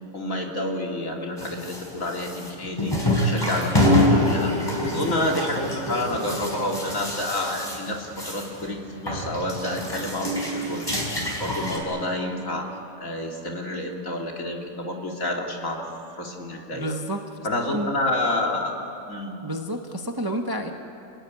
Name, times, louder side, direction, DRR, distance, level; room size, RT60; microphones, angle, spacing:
voice 1, 0.1-4.6 4.9-12.7 13.0-15.9 16.1-16.9 17.4-18.8 19.1-19.3, left 1 dB, 55° left, 1 dB, 3.1 m, -29 dB
sound 1, 1.4-8.7 8.9-11.8, left 1 dB, 15° left, 4.8 m, -25 dB
voice 2, 16.7-17.2 17.7-17.9 19.4-20.7, equal, 15° right, 3 dB, 1.2 m, -30 dB
29.0 x 17.5 x 9.6 m, 2.9 s
omnidirectional pair, 1.7 m